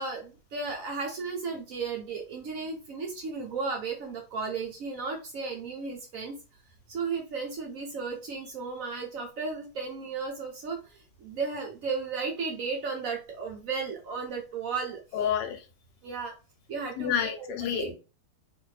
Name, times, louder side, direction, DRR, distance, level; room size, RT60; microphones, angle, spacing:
voice 1, 0.0-6.3 6.9-15.0 16.0-16.3 16.7-17.9, right 4 dB, 65° right, 1 dB, 0.9 m, -34 dB
voice 2, 15.1-15.6 17.0-17.9, left 9 dB, 80° left, 6 dB, 1.3 m, -29 dB
2.8 x 2.6 x 3.1 m, 0.32 s
omnidirectional pair, 1.9 m